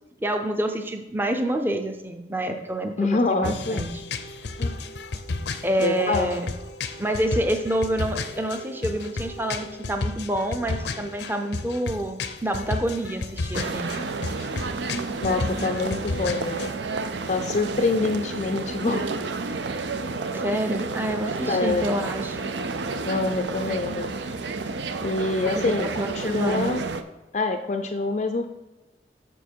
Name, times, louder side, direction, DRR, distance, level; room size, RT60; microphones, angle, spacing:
voice 1, 0.2-3.9 5.6-6.5 7.0-13.9 20.3-22.5 25.5-26.7, right 1 dB, 10° right, 5 dB, 0.6 m, -28 dB
voice 2, 3.0-3.8 4.6-4.8 5.8-6.4 15.2-16.7 17.3-19.1 21.5-22.1 23.1-24.1 25.0-25.9 26.1-26.8 27.3-28.5, left 3 dB, 40° left, 6 dB, 0.4 m, -26 dB
sound 1, 3.4-16.7, left 3 dB, 80° left, 0.6 m, -33 dB
sound 2, 13.5-27.0, right 4 dB, 85° right, 0.6 m, -31 dB
7.1 x 6.3 x 4.5 m, 1.1 s
head